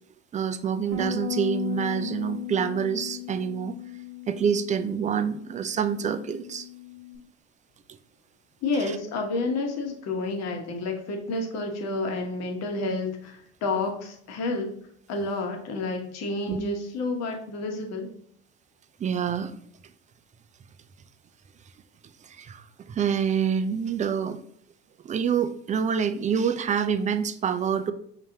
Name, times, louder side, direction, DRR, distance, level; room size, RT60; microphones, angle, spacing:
voice 1, 0.3-3.7 4.3-6.7 16.5-16.6 19.0-19.5 22.2-24.4 25.0-27.9, right 7 dB, 25° right, 10 dB, 0.4 m, -27 dB
Bass guitar, 0.9-7.2, left 8 dB, 80° right, 1.0 m, -36 dB
voice 2, 8.6-14.7 15.1-18.1, left 3 dB, 50° left, 3 dB, 1.1 m, -30 dB
5.6 x 3.0 x 2.7 m, 0.64 s
hypercardioid pair, 65°, 33 cm